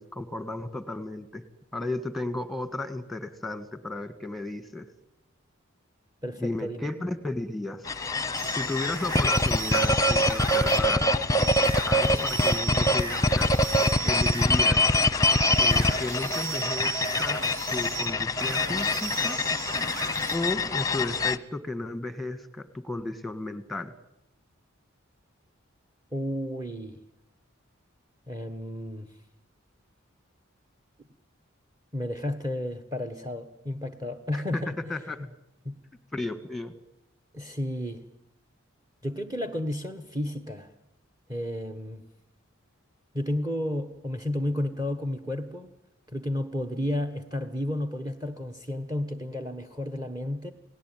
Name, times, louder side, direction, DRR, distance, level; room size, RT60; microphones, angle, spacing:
voice 1, 0.0-1.4 1.7-4.9 6.4-8.0 8.5-11.1 11.9-13.5 14.0-14.9 15.6-17.4 17.7-19.4 20.3-23.9 34.3-35.2 36.1-36.7, left 2 dB, ahead, 11 dB, 1.7 m, -34 dB
voice 2, 6.2-6.9 26.1-27.0 28.3-29.1 31.9-34.8 35.6-35.8 37.3-38.0 39.0-40.7 41.3-42.0 43.1-45.7 46.1-50.5, left 1 dB, 15° right, 10 dB, 1.3 m, -32 dB
sound 1, 7.9-21.4, left 1 dB, 15° left, 0.9 m, -24 dB
sound 2, 8.4-10.9 11.4-14.5 15.3-20.4, right 6 dB, 80° right, 5.6 m, -36 dB
29.5 x 18.0 x 9.2 m, 0.87 s
head